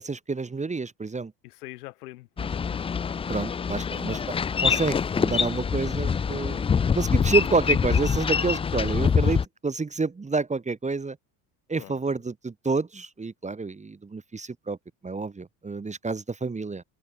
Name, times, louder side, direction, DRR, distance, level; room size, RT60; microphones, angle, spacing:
voice 1, 0.0-1.3 3.3-6.7 6.9-11.2 11.7-14.8 15.0-16.8, right 4 dB, 15° right, 1.2 m, -29 dB
voice 2, 1.4-2.8 11.8-12.2, left 19 dB, 85° left, 3.2 m, -45 dB
Boat Water vehicle, 2.4-9.4, left 6 dB, 15° left, 0.3 m, -25 dB
supercardioid pair, 85°, 45 cm